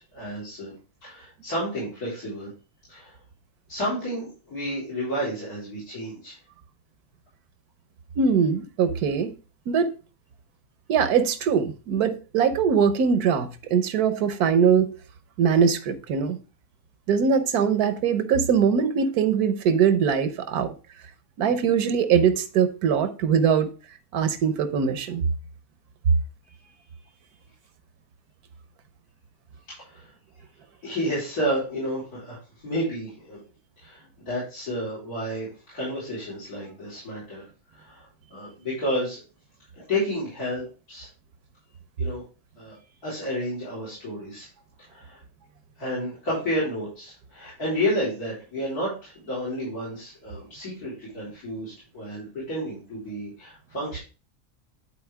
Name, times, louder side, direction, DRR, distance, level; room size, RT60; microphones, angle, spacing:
voice 1, 0.1-0.7 1.0-2.5 2.9-3.1 3.7-6.4 26.6-26.7 29.8-30.1 30.8-33.4 33.8-37.5 37.7-39.2 39.9-41.1 42.0-42.2 42.6-42.8 43.0-44.5 44.9-45.2 45.8-54.0, equal, 80° left, 4.6 m, -31 dB
voice 2, 8.2-9.3 9.7-9.9 10.9-14.9 15.4-16.4 17.1-20.7 21.4-23.7 24.1-25.2, right 6 dB, 85° right, 1.4 m, -22 dB
11.0 x 4.4 x 3.4 m
omnidirectional pair, 1.6 m